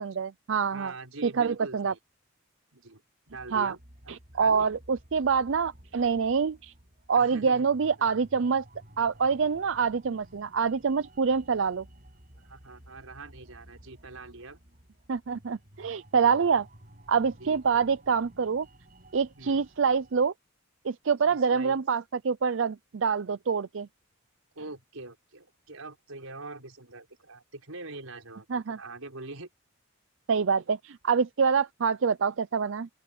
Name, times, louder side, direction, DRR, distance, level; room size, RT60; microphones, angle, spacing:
voice 1, 0.0-0.9 1.2-1.9 3.5-3.7 4.1-6.7 7.1-8.6 9.0-11.8 15.1-16.7 17.1-18.7 19.1-20.3 20.8-23.9 28.5-28.8 30.3-32.9, right 6 dB, 60° right, 0.5 m, -26 dB
voice 2, 0.7-2.0 2.7-4.7 7.1-7.7 8.0-8.1 12.4-14.6 17.4-17.6 19.3-19.6 21.2-21.8 24.5-29.5, right 2 dB, 90° right, 5.2 m, -44 dB
sound 1, 3.3-20.3, right 1 dB, 40° right, 7.6 m, -54 dB
open air
head